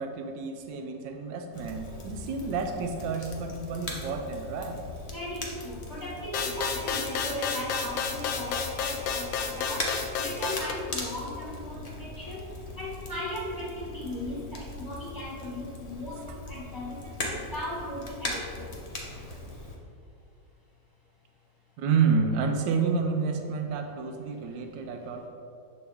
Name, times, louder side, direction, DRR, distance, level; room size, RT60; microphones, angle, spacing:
voice 1, 0.0-4.8 21.8-25.3, right 5 dB, 90° right, 4 dB, 1.3 m, -29 dB
Crackle, 1.5-19.8, left 2 dB, 45° left, 0.5 m, -40 dB
voice 2, 5.1-9.9 10.2-12.5 12.8-17.0 17.2-18.7, left 1 dB, 15° left, -6 dB, 1.3 m, -37 dB
sound 1, 6.3-10.7, left 6 dB, 70° left, 0.8 m, -31 dB
6.9 x 4.1 x 3.5 m, 2.4 s
omnidirectional pair, 1.9 m